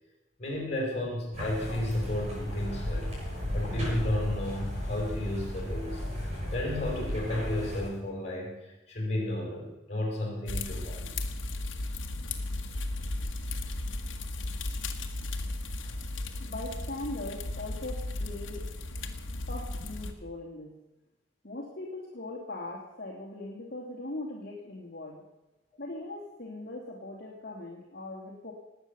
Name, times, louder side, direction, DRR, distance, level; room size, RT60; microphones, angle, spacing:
voice 1, 0.4-3.1 3.5-11.1 15.8-15.9, left 1 dB, 35° left, 0 dB, 5.5 m, -33 dB
sound 1, 1.3-7.9, left 1 dB, 30° right, 7.4 m, -34 dB
sound 2, 3.3-5.8, equal, 90° right, 6.4 m, -47 dB
sound 3, 10.5-20.1, left 2 dB, 80° left, 1.6 m, -35 dB
voice 2, 16.4-18.7 19.5-20.8 21.4-25.2 25.8-28.5, left 2 dB, 50° left, -3 dB, 2.5 m, -40 dB
19.0 x 8.6 x 6.8 m, 0.99 s
head